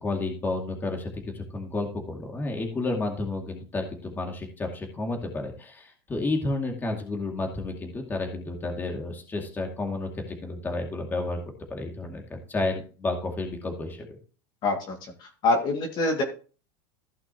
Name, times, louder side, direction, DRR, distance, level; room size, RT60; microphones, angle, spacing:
voice 1, 0.0-11.4 11.7-14.2, left 2 dB, 15° left, 2 dB, 2.2 m, -31 dB
voice 2, 14.6-16.2, left 2 dB, 35° left, 2 dB, 2.1 m, -26 dB
15.0 x 5.9 x 2.9 m, 0.37 s
supercardioid pair, 135°, 12 cm